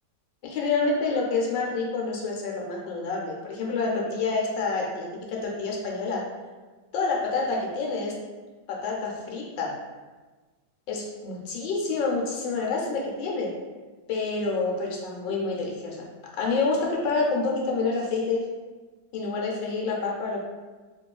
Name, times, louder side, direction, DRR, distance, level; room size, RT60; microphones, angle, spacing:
voice 1, 0.4-6.3 6.9-8.2 8.7-9.8 10.9-13.5 14.1-16.0 16.4-18.4 19.1-20.4, left 3 dB, 85° left, -2 dB, 1.3 m, -28 dB
3.0 x 3.0 x 2.3 m, 1.3 s
omnidirectional pair, 1.9 m